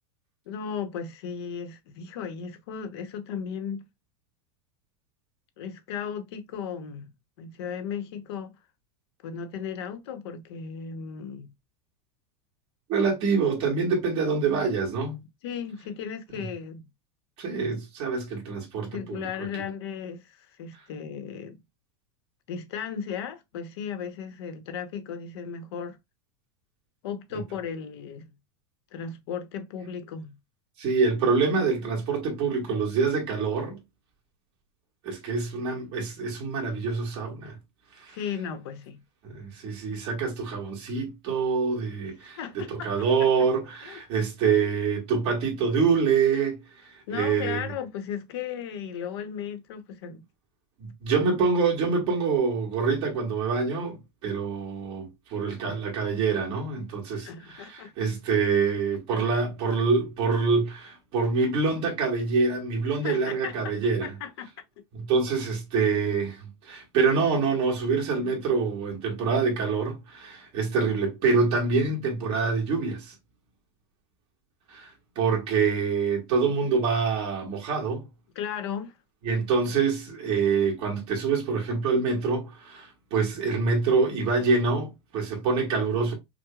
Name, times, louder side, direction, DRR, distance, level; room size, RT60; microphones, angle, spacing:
voice 1, 0.5-3.8 5.6-7.1 7.4-8.6 9.2-11.5 15.4-16.9 18.9-21.6 22.5-26.0 27.0-28.3 28.9-30.3 38.1-39.0 42.4-42.9 43.2-43.5 43.8-44.0 44.5-44.7 47.1-50.2 55.5-55.6 57.1-57.9 62.9-63.7 64.0-64.5 78.3-79.0, left 7 dB, 65° left, 1.0 m, -36 dB
voice 2, 12.9-15.2 16.3-16.5 17.4-19.5 30.8-33.8 35.0-37.6 38.0-38.2 39.2-47.7 50.8-64.1 64.9-73.1 74.7-74.9 75.2-78.1 79.2-86.1, right 5 dB, 40° right, 1.9 m, -26 dB
6.0 x 2.3 x 2.4 m
supercardioid pair, 165°, 14 cm